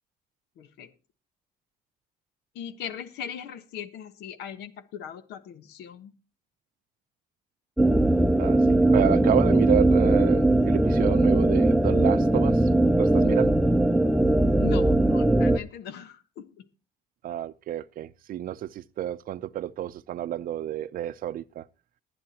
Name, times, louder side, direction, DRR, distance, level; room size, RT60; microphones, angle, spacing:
voice 1, 0.6-0.9 2.5-6.1 14.6-16.6, left 8 dB, 80° left, 1.2 m, -39 dB
sound 1, 7.8-15.6, right 1 dB, ahead, 0.6 m, -20 dB
voice 2, 8.4-12.7 13.0-13.6 17.2-21.6, right 11 dB, 55° right, 0.6 m, -30 dB
20.5 x 9.9 x 2.8 m
cardioid pair, 110°, 17 cm